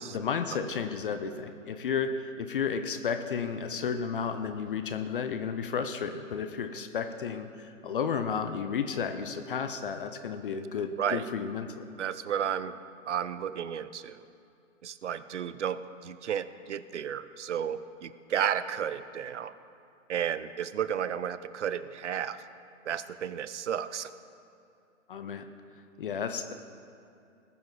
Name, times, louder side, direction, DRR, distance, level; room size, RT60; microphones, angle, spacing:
voice 1, 0.0-11.9 25.1-25.5 26.0-26.5, left 6 dB, 40° left, 8 dB, 0.6 m, -32 dB
voice 2, 12.0-12.8 13.1-14.2 14.8-19.5 20.1-22.4 22.9-24.1, right 9 dB, 60° right, 14 dB, 0.6 m, -32 dB
19.0 x 6.9 x 4.0 m, 2.6 s
figure-of-eight pair, 135°, 40 cm